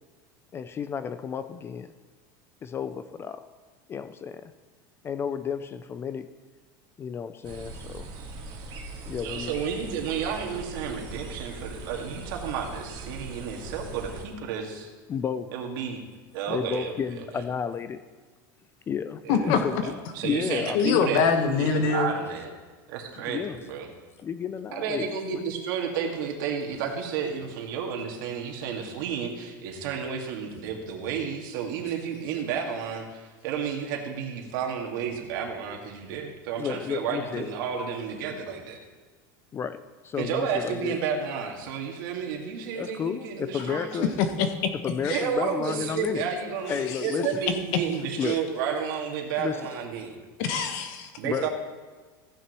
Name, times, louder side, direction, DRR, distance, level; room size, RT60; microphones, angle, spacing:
voice 1, 0.5-1.9 2.6-3.4 3.9-4.5 5.0-6.3 7.0-8.1 9.1-9.6 15.1-15.6 16.5-18.0 18.9-19.9 20.2-21.1 23.3-23.6 24.2-25.2 36.6-37.5 39.5-39.8 40.0-41.0 42.7-44.1 44.8-46.2 46.7-47.3 48.2-48.4 49.4-49.6 51.2-51.5, left 7 dB, 20° left, 12 dB, 0.3 m, -31 dB
sound 1, 7.4-14.2, right 3 dB, 40° right, 1.8 m, -40 dB
voice 2, 9.2-14.9 15.5-16.0 16.3-17.4 19.2-19.5 19.8-22.5 22.9-23.9 24.7-38.8 40.2-44.2 45.1-50.2 51.2-51.5, right 7 dB, 75° right, 1 dB, 1.9 m, -31 dB
voice 3, 19.3-19.6 20.7-22.1 44.2-44.7 45.0-45.2 46.9-47.0 48.2-48.3 50.4-51.1, left 6 dB, 60° left, 7 dB, 1.2 m, -24 dB
15.0 x 9.3 x 3.0 m, 1.4 s
supercardioid pair, 145°, 11 cm